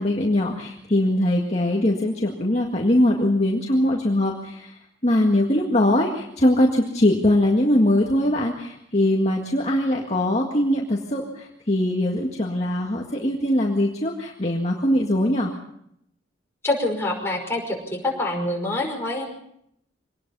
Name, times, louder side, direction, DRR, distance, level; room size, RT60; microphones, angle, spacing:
voice 1, 0.0-15.5, left 1 dB, 35° left, -1 dB, 1.9 m, -21 dB
voice 2, 16.6-19.2, left 2 dB, 15° left, -1 dB, 5.4 m, -26 dB
24.5 x 19.0 x 5.5 m, 0.74 s
head